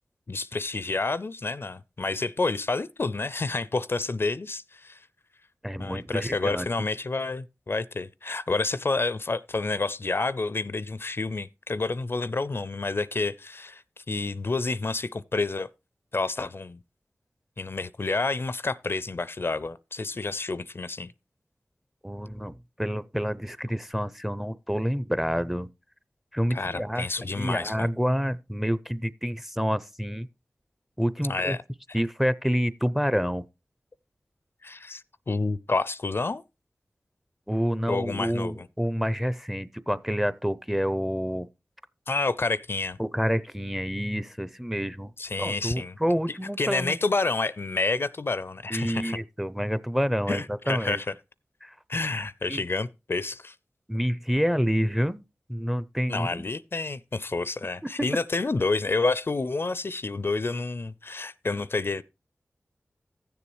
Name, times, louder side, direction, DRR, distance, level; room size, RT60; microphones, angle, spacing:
voice 1, 0.3-5.0 5.8-15.7 16.1-16.8 17.6-21.1 26.5-27.9 31.3-31.6 34.6-36.4 37.9-38.7 42.1-43.0 45.2-46.0 46.6-49.2 50.3-51.1 51.9-53.5 56.1-62.0, left 3 dB, 50° left, 0.4 m, -29 dB
voice 2, 5.6-6.7 22.0-25.7 26.3-30.3 31.0-31.6 31.9-33.4 37.5-41.5 43.0-45.1 45.4-47.0 48.7-51.0 51.6-51.7 52.5-52.6 53.9-55.2 55.5-56.5, equal, 5° right, 0.5 m, -28 dB
15.0 x 6.9 x 3.1 m
cardioid pair, 45°, 5 cm